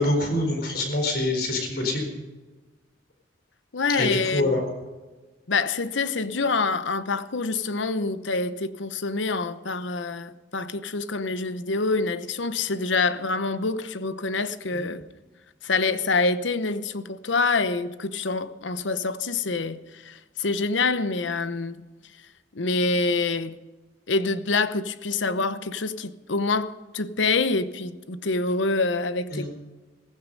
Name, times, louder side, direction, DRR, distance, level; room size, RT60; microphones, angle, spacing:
voice 1, 0.0-2.1 3.9-4.6 14.7-14.9 29.3-29.5, left 2 dB, 55° left, 4.4 m, -25 dB
voice 2, 3.7-4.5 5.5-15.0 15.6-21.8 22.5-23.6 24.1-29.5, left 3 dB, 80° left, 0.9 m, -26 dB
16.0 x 15.5 x 5.3 m
head